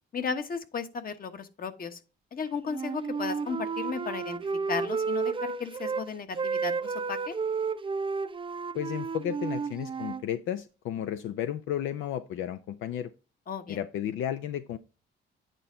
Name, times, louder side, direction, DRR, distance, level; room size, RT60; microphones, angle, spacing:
voice 1, 0.1-2.0 2.3-4.4 4.7-7.4 13.5-13.8, left 5 dB, 45° left, 1.2 m, -35 dB
Wind instrument woodwind instrument, 2.7-6.0 6.3-10.2, right 5 dB, 25° right, 0.5 m, -32 dB
voice 2, 8.7-13.1 13.7-14.8, left 10 dB, 80° left, 0.5 m, -33 dB
9.1 x 4.4 x 3.8 m
cardioid pair, 90°, 20 cm